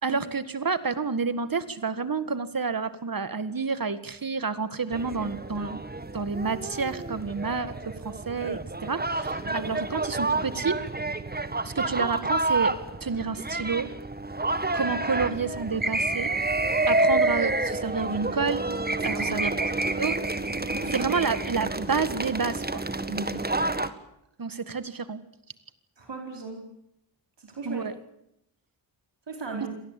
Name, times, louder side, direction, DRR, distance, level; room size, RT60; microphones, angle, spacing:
voice 1, 0.0-5.8 6.1-10.8 11.6-13.9 14.7-16.3 16.9-18.7 19.0-19.5 20.0-20.2 20.9-22.8 24.4-25.2 27.6-27.9 29.6-29.7, right 5 dB, 45° right, 13 dB, 1.9 m, -29 dB
sound 1, 4.9-23.9, right 2 dB, 20° right, 1.7 m, -29 dB
voice 2, 20.7-21.0 23.1-23.4 26.0-26.6 27.4-27.9 29.3-29.7, right 4 dB, 60° right, 2 dB, 4.7 m, -37 dB
26.0 x 18.5 x 8.4 m, 0.79 s
cardioid pair, 50°, 47 cm